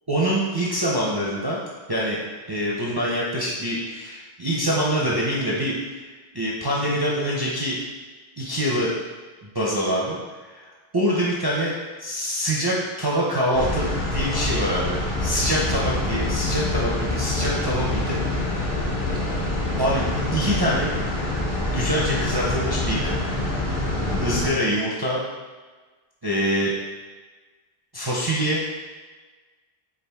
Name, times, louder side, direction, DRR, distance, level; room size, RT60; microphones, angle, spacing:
voice 1, 0.1-1.6 1.9-2.2 2.5-6.0 6.3-7.8 8.4-8.9 9.4-10.2 10.5-10.6 10.9-11.7 12.0-18.7 19.8-20.9 21.7-23.2 24.2-25.2 26.2-26.7 27.9-28.6, equal, 35° right, -6 dB, 0.4 m, -25 dB
sound 1, 13.5-24.5, left 2 dB, 55° left, 1.0 m, -26 dB
4.9 x 2.4 x 3.4 m, 1.3 s
omnidirectional pair, 1.1 m